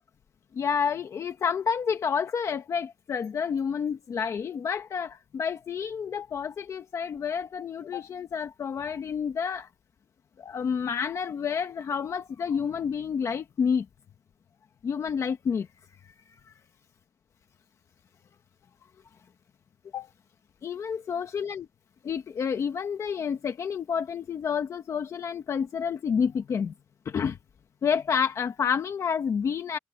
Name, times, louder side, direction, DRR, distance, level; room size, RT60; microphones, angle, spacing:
voice 1, 0.5-9.7 10.4-13.9 14.8-15.7 19.9-20.1 20.6-21.6 22.0-26.7 27.0-27.4 27.8-29.8, left 6 dB, 40° left, 1.1 m, -29 dB
wide cardioid pair, 170°, 8 cm